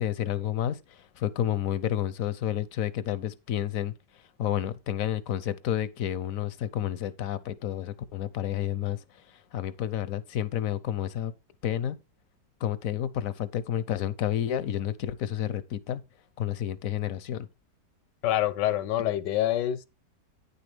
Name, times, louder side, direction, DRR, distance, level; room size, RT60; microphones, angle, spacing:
voice 1, 0.0-3.9 4.4-9.0 9.3-11.3 11.6-12.0 12.6-16.0 16.4-17.5, left 11 dB, 65° left, 0.9 m, -30 dB
voice 2, 18.2-19.9, left 13 dB, 85° left, 1.4 m, -26 dB
9.6 x 6.8 x 3.4 m
omnidirectional pair, 1.8 m